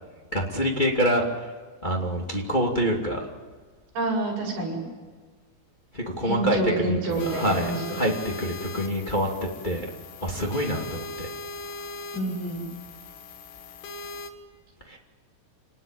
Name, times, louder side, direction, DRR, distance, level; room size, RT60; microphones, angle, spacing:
voice 1, 0.3-1.5 1.8-3.2 5.9-9.3 9.6-9.9 10.2-11.3 14.9-15.0, equal, 20° left, -1 dB, 1.4 m, -26 dB
voice 2, 4.0-4.8 6.2-8.1 12.1-12.6, right 2 dB, 55° right, -1 dB, 9.4 m, -28 dB
sound 1, 7.1-14.3, left 3 dB, 55° left, 2.6 m, -39 dB
28.0 x 19.5 x 9.0 m, 1.5 s
omnidirectional pair, 5.4 m